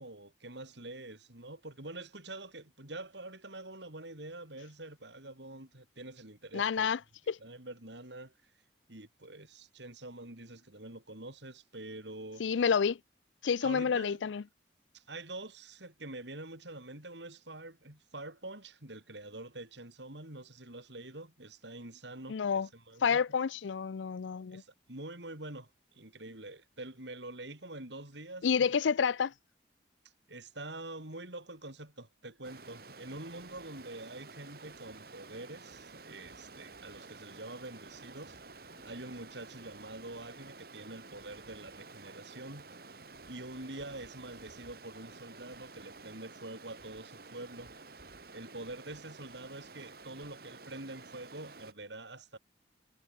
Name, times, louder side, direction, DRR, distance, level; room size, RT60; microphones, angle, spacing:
voice 1, 0.0-6.9 7.4-8.3 8.9-12.4 13.6-14.3 14.9-23.2 24.5-28.7 30.3-38.4 38.8-42.7 43.3-47.7 48.3-52.4, right 2 dB, 70° right, 4.9 m, -46 dB
voice 2, 6.5-7.0 7.3-7.4 12.4-13.0 13.4-14.4 22.3-22.7 23.0-24.6 28.4-29.3, left 6 dB, 80° left, 0.4 m, -29 dB
Stream, 32.4-51.7, right 3 dB, 55° right, 2.5 m, -51 dB
head